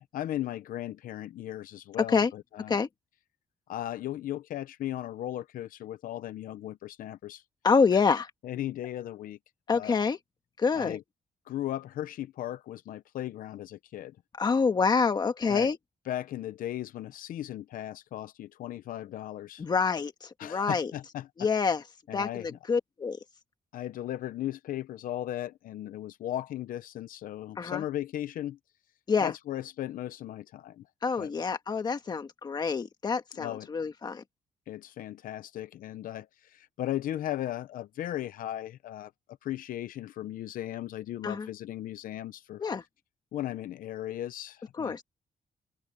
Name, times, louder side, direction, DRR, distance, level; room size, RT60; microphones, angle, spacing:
voice 1, 0.1-2.8 3.7-7.4 7.9-8.0 8.4-9.4 9.7-10.0 10.7-11.0 11.5-14.2 15.5-15.7 16.1-19.6 20.4-21.3 22.1-22.6 23.7-28.6 29.2-30.9 31.2-31.3 33.4-33.7 34.7-39.1 39.4-42.6 43.3-45.0, left 13 dB, 85° left, 0.7 m, -36 dB
voice 2, 7.6-8.3 9.7-10.2 10.6-11.0 14.4-15.8 19.6-20.9 21.4-21.8 22.1-23.2 27.6-27.8 29.1-29.3 31.0-34.2 41.2-41.5 42.6-42.8 44.8-45.0, left 5 dB, 30° left, 1.6 m, -27 dB
open air
wide cardioid pair, 170°, 14 cm